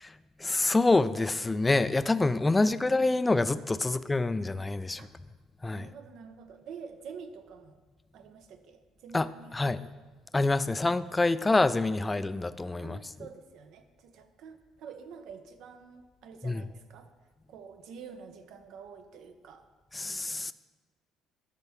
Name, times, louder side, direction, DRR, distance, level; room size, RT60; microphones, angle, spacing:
voice 1, 0.4-5.0 5.6-5.9 9.1-9.8 10.3-13.0 16.4-16.6 19.9-20.5, left 2 dB, 15° left, 15 dB, 0.3 m, -26 dB
voice 2, 3.9-4.4 5.0-5.1 5.7-7.8 8.1-9.9 10.6-10.7 12.8-17.1 17.5-19.6, right 6 dB, 70° right, 8 dB, 0.8 m, -48 dB
12.0 x 5.7 x 3.6 m, 1.3 s
cardioid pair, 95°, 0 cm